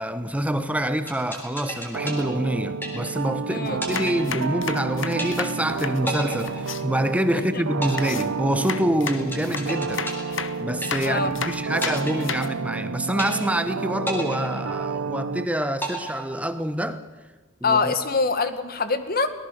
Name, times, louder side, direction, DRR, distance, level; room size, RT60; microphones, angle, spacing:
voice 1, 0.0-17.0 17.6-17.9, right 1 dB, 5° right, 1.1 m, -26 dB
sound 1, 1.1-3.4 3.8-4.8 5.2-5.7 6.1-7.3 7.8-11.4 11.8-12.8 13.2-13.7 14.1-15.3 15.8-16.8, equal, 10° left, 3.6 m, -33 dB
sound 2, 1.9-15.5, right 4 dB, 75° right, 0.6 m, -30 dB
voice 2, 3.5-3.8 7.3-7.6 11.0-11.3 17.6-19.3, left 4 dB, 45° left, 1.8 m, -24 dB
sound 3, 3.7-6.8 8.0-12.5, left 6 dB, 65° left, 1.3 m, -33 dB
25.0 x 18.5 x 6.6 m
head